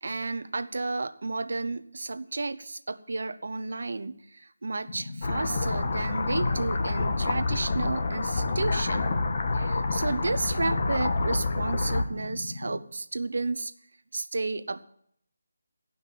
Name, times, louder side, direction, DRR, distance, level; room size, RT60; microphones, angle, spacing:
voice 1, 0.0-9.1 9.5-13.7 14.1-14.8, right 3 dB, 65° right, 12 dB, 0.9 m, -32 dB
sound 1, 4.9-12.8, left 3 dB, 60° left, 1.6 m, -39 dB
sound 2, 5.2-12.0, left 3 dB, 40° left, 1.3 m, -28 dB
16.0 x 5.9 x 9.3 m, 0.68 s
figure-of-eight pair, 170°, 0 cm